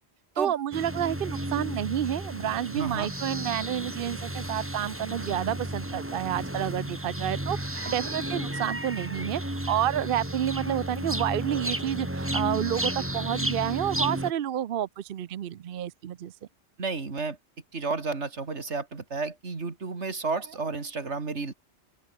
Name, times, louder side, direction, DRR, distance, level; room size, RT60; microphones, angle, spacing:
voice 1, 0.4-16.3, right 10 dB, 60° right, 0.8 m, -30 dB
sound 1, 0.7-14.3, right 1 dB, 10° right, 2.2 m, -33 dB
voice 2, 2.8-3.1 16.8-17.4 17.7-21.5, right 4 dB, 90° right, 2.7 m, -32 dB
open air
omnidirectional pair, 1.1 m